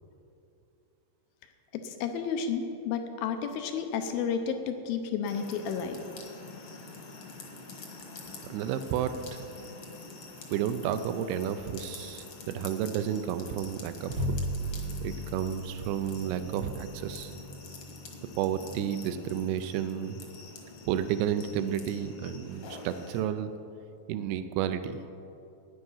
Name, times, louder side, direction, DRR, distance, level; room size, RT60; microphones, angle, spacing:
voice 1, 1.7-6.0, left 6 dB, 80° left, 7 dB, 2.1 m, -32 dB
sound 1, 5.2-23.2, left 3 dB, 60° left, 1.7 m, -47 dB
voice 2, 8.5-9.4 10.5-14.4 15.0-17.3 18.4-20.2 20.9-23.5 24.1-25.0, right 9 dB, 85° right, 10 dB, 2.3 m, -31 dB
Bowed string instrument, 14.1-20.6, equal, 60° right, 1.7 m, -38 dB
15.0 x 9.9 x 5.6 m, 2.7 s
omnidirectional pair, 5.2 m